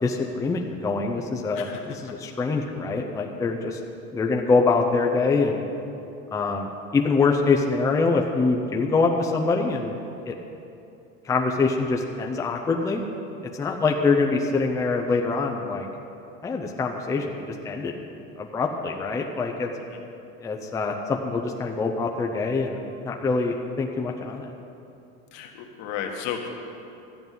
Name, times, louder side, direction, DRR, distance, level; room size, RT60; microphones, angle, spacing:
voice 1, 0.0-3.8 4.1-5.6 6.3-10.0 10.3-10.4 11.2-13.1 13.6-15.9 16.4-18.0 18.4-19.7 20.4-22.8 23.0-24.5, left 4 dB, 10° left, 1 dB, 0.5 m, -24 dB
voice 2, 25.3-26.5, left 8 dB, 60° left, 2 dB, 1.6 m, -33 dB
13.5 x 5.4 x 9.3 m, 2.8 s
cardioid pair, 150°, 31 cm